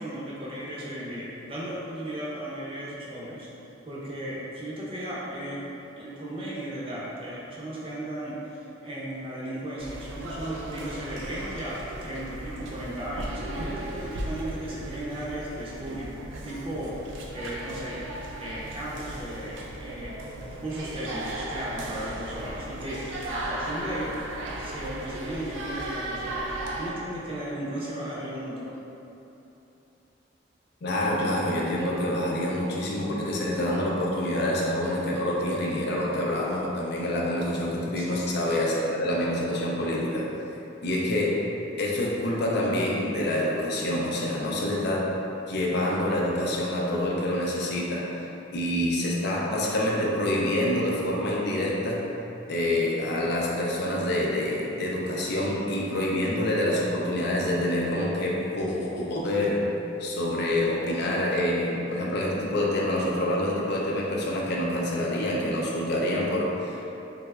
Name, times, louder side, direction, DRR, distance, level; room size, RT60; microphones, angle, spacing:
voice 1, 0.0-5.7 6.0-16.1 16.4-18.0 18.4-20.2 20.6-24.1 24.6-28.7 38.0-38.3, right 1 dB, 30° right, -7 dB, 0.6 m, -36 dB
sound 1, 9.8-26.9, right 1 dB, 90° right, 0.4 m, -36 dB
voice 2, 30.8-40.3 40.8-41.3 41.8-45.1 45.5-48.3 48.5-52.0 52.5-59.6 60.0-66.8, left 1 dB, 60° left, -3 dB, 0.5 m, -27 dB
3.3 x 2.9 x 2.3 m, 3.0 s
head